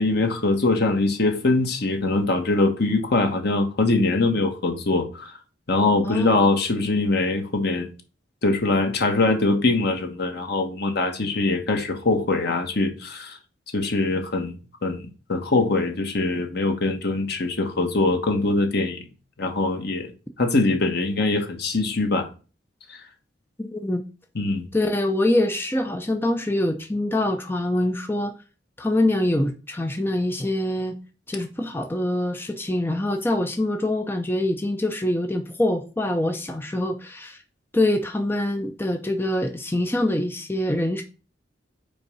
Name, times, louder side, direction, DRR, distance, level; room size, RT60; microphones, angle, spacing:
voice 1, 0.0-5.3 5.7-7.9 8.4-13.4 13.7-14.5 14.8-19.0 19.4-20.1 20.4-22.3 24.3-24.7, left 2 dB, 60° left, 1.5 m, -22 dB
voice 2, 23.7-24.0 24.7-28.3 28.8-31.0 31.3-37.4 37.7-41.0, left 1 dB, 10° left, 0.6 m, -24 dB
5.4 x 4.5 x 5.5 m
head